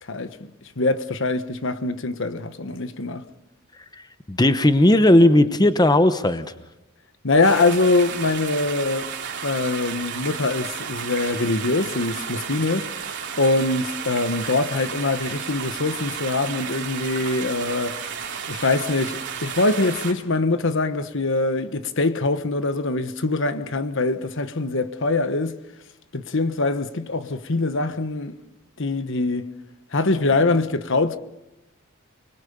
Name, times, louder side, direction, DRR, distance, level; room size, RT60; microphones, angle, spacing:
voice 1, 0.8-3.2 7.2-9.1 9.4-12.9 13.4-18.0 18.5-25.6 26.1-28.4 28.8-29.5 29.9-31.2, left 2 dB, 60° left, 1.2 m, -23 dB
voice 2, 4.3-6.4, left 1 dB, 20° left, 1.0 m, -16 dB
sound 1, 7.4-20.1, right 7 dB, 55° right, 3.1 m, -32 dB
29.5 x 21.5 x 7.0 m
head